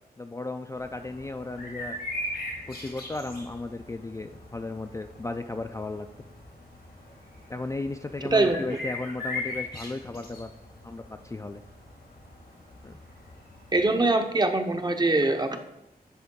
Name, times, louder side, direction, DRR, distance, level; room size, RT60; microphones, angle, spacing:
voice 1, 0.2-2.0 2.7-6.1 7.5-10.5 10.8-11.6 12.8-13.0, left 2 dB, 20° left, 6 dB, 0.3 m, -35 dB
sound 1, 0.7-14.0, left 2 dB, 85° left, 1.8 m, -40 dB
voice 2, 13.7-15.6, right 2 dB, 25° right, 6 dB, 0.7 m, -23 dB
10.0 x 3.7 x 3.6 m, 0.89 s
wide cardioid pair, 75°, 16 cm